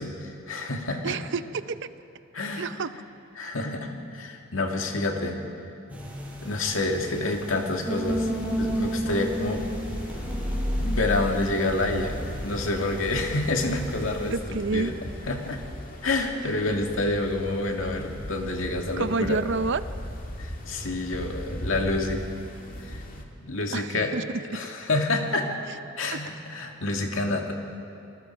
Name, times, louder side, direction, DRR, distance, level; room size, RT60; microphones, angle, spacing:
voice 1, 0.0-1.2 2.3-2.7 3.4-5.4 6.4-8.3 8.6-9.7 10.8-12.2 12.4-14.9 15.3-15.6 16.0-19.4 20.4-22.3 22.8-23.0 23.4-24.1 24.5-25.5 26.0-27.5, left 2 dB, 75° left, 2 dB, 2.3 m, -28 dB
voice 2, 1.0-1.8 2.6-2.9 14.3-14.9 19.0-19.8 23.7-24.2 26.1-26.2, right 3 dB, 65° right, 13 dB, 0.7 m, -28 dB
sound 1, 5.9-14.4, equal, 10° right, 5.2 m, -32 dB
sound 2, 8.1-23.2, equal, 45° left, 2.1 m, -38 dB
28.5 x 20.0 x 4.6 m, 3.0 s
head